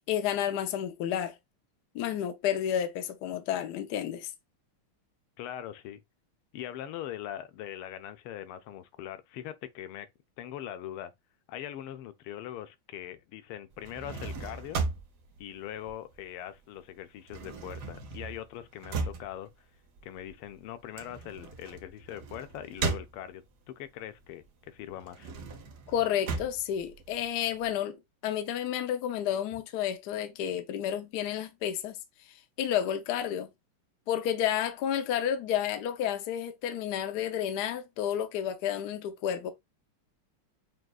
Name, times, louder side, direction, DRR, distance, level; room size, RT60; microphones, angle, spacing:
voice 1, 0.0-1.3 1.9-4.3 25.9-28.0 28.2-32.0 32.6-33.5 34.1-39.5, left 10 dB, 70° left, 1.0 m, -31 dB
voice 2, 5.4-6.0 6.5-10.1 10.4-11.1 11.5-14.8 15.4-19.5 20.0-25.3, left 11 dB, 90° left, 1.5 m, -41 dB
sound 1, 13.7-16.6 16.8-23.7 24.1-27.7, right 4 dB, 60° right, 1.2 m, -37 dB
6.2 x 2.4 x 2.3 m
omnidirectional pair, 2.3 m